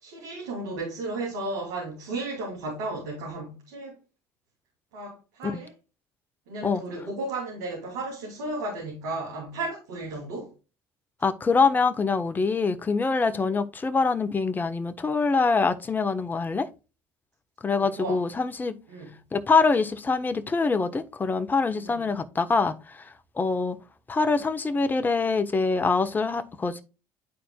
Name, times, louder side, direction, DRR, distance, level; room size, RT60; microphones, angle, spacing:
voice 1, 0.0-3.9 4.9-5.7 6.5-10.5 13.4-13.5 17.7-18.2 18.9-19.2 21.8-22.0, right 2 dB, 85° right, 2.8 m, -34 dB
voice 2, 11.2-16.7 17.6-18.8 19.3-23.0 23.4-23.8 24.1-26.8, left 4 dB, 25° left, 1.1 m, -24 dB
11.0 x 4.3 x 2.3 m
supercardioid pair, 80°, 8 cm